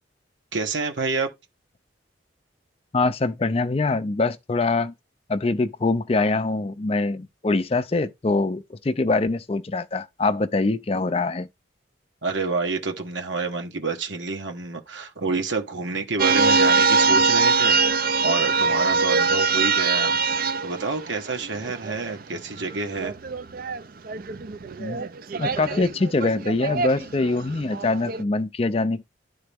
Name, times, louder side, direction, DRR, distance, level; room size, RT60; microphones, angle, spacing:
voice 1, 0.5-1.3 12.2-20.1 20.6-23.1, right 4 dB, 75° right, 1.3 m, -28 dB
voice 2, 2.9-4.9 5.3-11.5 24.8-25.0 25.4-29.0, left 3 dB, 30° left, 0.4 m, -24 dB
sound 1, 16.2-22.2 22.6-28.2, right 4 dB, 50° right, 0.4 m, -23 dB
11.0 x 3.8 x 3.5 m
head